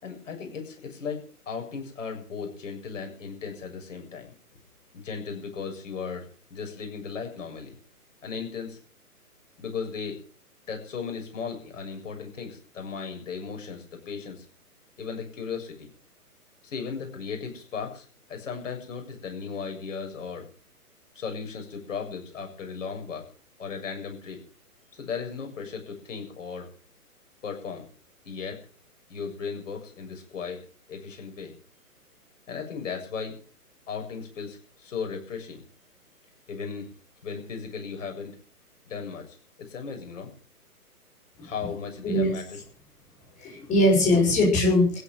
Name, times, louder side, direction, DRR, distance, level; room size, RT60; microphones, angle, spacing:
voice 1, 0.0-4.3 4.9-7.8 8.2-8.8 9.6-10.2 10.7-14.5 15.0-15.9 16.6-20.5 21.1-23.3 23.6-24.4 24.9-26.7 27.4-27.9 28.2-28.6 29.1-30.6 30.9-31.5 32.5-33.4 33.9-35.6 36.5-36.9 37.2-38.4 38.9-40.3 41.4-42.6, left 5 dB, 55° left, 3 dB, 7.5 m, -36 dB
voice 2, 43.4-45.0, left 1 dB, 15° left, -2 dB, 6.6 m, -21 dB
16.0 x 9.9 x 9.2 m, 0.42 s
figure-of-eight pair, 135°, 46 cm